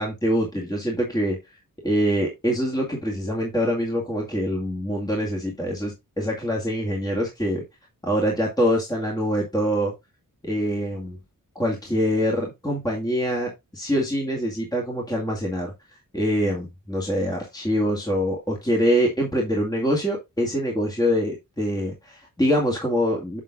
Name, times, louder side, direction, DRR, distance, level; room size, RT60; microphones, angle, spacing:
voice 1, 0.0-1.4 1.8-7.6 8.0-9.9 10.4-11.2 11.6-15.7 16.1-23.4, equal, 10° left, -2 dB, 2.2 m, -24 dB
7.4 x 7.3 x 2.5 m, 0.21 s
wide cardioid pair, 125°, 34 cm